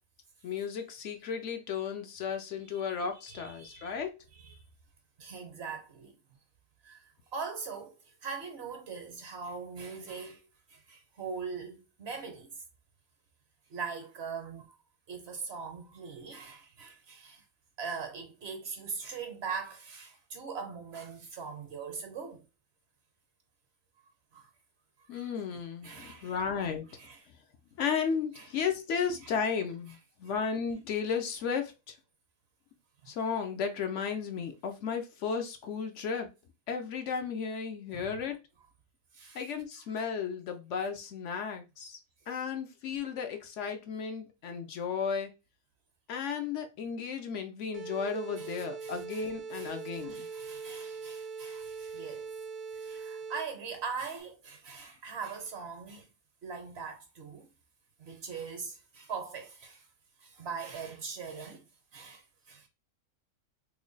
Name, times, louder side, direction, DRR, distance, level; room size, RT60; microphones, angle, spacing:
voice 1, 0.4-4.2 25.1-26.9 27.8-31.9 33.1-36.3 36.7-38.4 39.3-42.0 42.3-45.3 46.1-50.3, left 6 dB, 65° left, 0.9 m, -34 dB
voice 2, 3.3-3.9 4.3-4.6 5.2-6.1 6.8-12.6 13.7-14.8 15.1-17.4 17.8-22.4 24.3-24.5 25.0-25.3 25.8-26.4 27.0-27.2 28.4-28.5 29.2-29.3 33.0-33.1 37.9-38.2 39.1-39.4 48.4-48.5 48.8-49.3 49.5-52.3 52.7-56.1 56.4-57.5 58.0-59.9 60.2-61.6 61.9-62.7, right 5 dB, 60° right, 0.9 m, -41 dB
sound 1, 47.7-53.7, right 5 dB, 40° right, 0.5 m, -41 dB
3.1 x 2.2 x 3.8 m
omnidirectional pair, 1.4 m